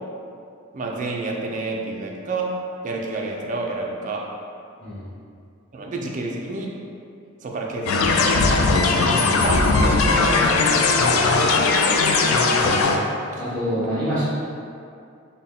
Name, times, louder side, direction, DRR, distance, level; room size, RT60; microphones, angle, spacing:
voice 1, 0.7-2.5 2.8-4.2 5.7-6.7 7.4-8.5 9.1-9.6 10.0-11.0, right 3 dB, 40° right, -1 dB, 0.4 m, -29 dB
sound 1, 7.9-13.0, left 3 dB, 80° left, 0.3 m, -18 dB
voice 2, 11.1-11.6 13.3-14.2, equal, 5° left, -14 dB, 1.1 m, -27 dB
3.8 x 2.1 x 3.6 m, 2.4 s
head